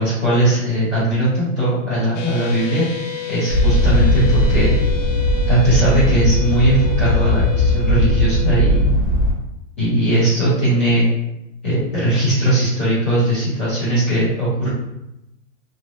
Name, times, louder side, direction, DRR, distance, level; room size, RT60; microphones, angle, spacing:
voice 1, 0.0-2.8 3.3-4.8 5.5-8.9 9.8-11.1 11.6-14.7, right 1 dB, 10° left, -15 dB, 0.3 m, -18 dB
sound 1, 2.1-8.8, left 11 dB, 90° left, 0.6 m, -31 dB
sound 2, 3.5-9.3, left 1 dB, 35° right, 1.3 m, -18 dB
2.8 x 2.2 x 2.4 m, 0.89 s
hypercardioid pair, 155°, 37 cm